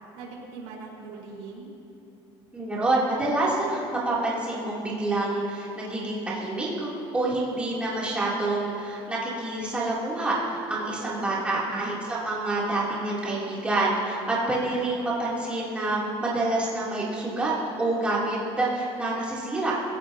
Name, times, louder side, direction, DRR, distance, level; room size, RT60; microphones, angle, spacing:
voice 1, 0.1-1.7 11.0-11.8, right 4 dB, 80° right, -3 dB, 4.9 m, -41 dB
voice 2, 2.5-17.5 17.8-19.7, right 2 dB, 10° right, -7 dB, 3.4 m, -27 dB
27.0 x 16.5 x 3.0 m, 2.9 s
cardioid pair, 150°, 11 cm